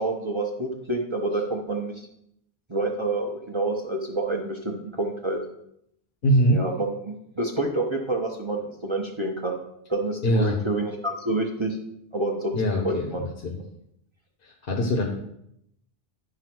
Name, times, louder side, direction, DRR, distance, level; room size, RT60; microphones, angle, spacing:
voice 1, 0.0-1.9 2.7-5.4 6.5-9.6 9.9-11.8 12.1-13.2, right 2 dB, 30° right, 0 dB, 1.0 m, -28 dB
voice 2, 6.2-6.6 10.2-10.6 12.5-13.6 14.4-15.1, equal, 65° left, 1 dB, 1.2 m, -23 dB
9.8 x 3.9 x 6.1 m, 0.75 s
omnidirectional pair, 1.0 m